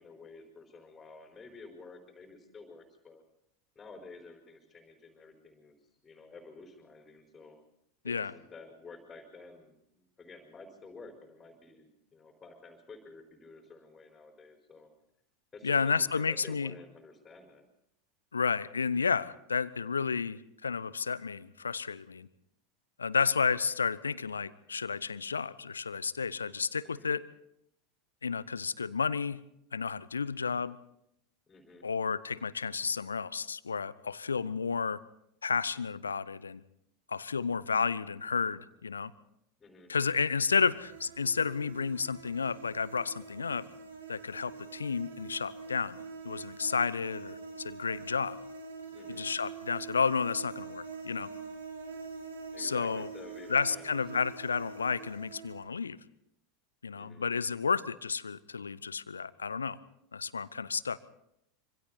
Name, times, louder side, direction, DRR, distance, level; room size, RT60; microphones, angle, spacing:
voice 1, 0.0-3.2 3.7-7.6 8.0-14.9 15.5-17.7 26.8-27.2 31.5-31.9 39.6-39.9 48.9-49.3 52.5-54.3 56.9-57.3, left 3 dB, 15° left, 2 dB, 4.6 m, -51 dB
voice 2, 15.6-16.7 18.3-22.3 23.0-27.2 28.2-29.4 29.7-30.8 31.8-35.0 35.4-36.6 37.1-39.1 39.9-43.6 44.1-46.0 46.2-48.4 49.1-51.3 52.6-53.1 53.5-56.0 56.8-59.8 60.1-61.0, left 5 dB, 75° left, 18 dB, 0.8 m, -31 dB
sound 1, 40.6-55.6, right 5 dB, 70° right, 3.1 m, -45 dB
26.0 x 26.0 x 4.1 m, 0.78 s
figure-of-eight pair, 80°, 0 cm